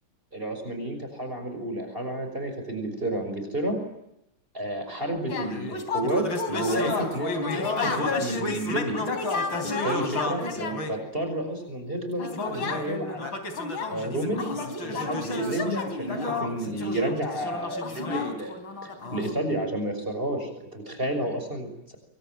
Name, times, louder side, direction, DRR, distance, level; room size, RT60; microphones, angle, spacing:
voice 1, 0.3-3.8 4.5-9.0 9.6-13.2 13.9-14.5 14.8-22.0, right 1 dB, 25° right, 5 dB, 6.2 m, -31 dB
sound 1, 5.3-11.0 12.2-19.3, left 3 dB, 70° left, 4.4 m, -30 dB
27.0 x 24.0 x 9.2 m, 0.83 s
omnidirectional pair, 2.2 m